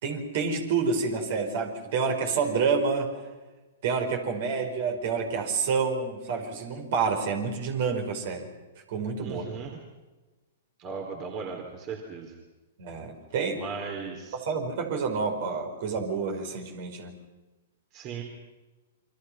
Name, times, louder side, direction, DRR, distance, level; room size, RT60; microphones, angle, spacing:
voice 1, 0.0-3.1 3.8-8.5 8.9-9.4 12.8-13.6 14.3-17.1, right 5 dB, 55° right, 4 dB, 5.2 m, -28 dB
voice 2, 9.2-9.7 10.8-12.3 13.6-14.4 17.9-18.2, right 5 dB, 35° right, 2 dB, 3.8 m, -37 dB
29.0 x 24.0 x 5.9 m, 1.2 s
hypercardioid pair, 120°, 0 cm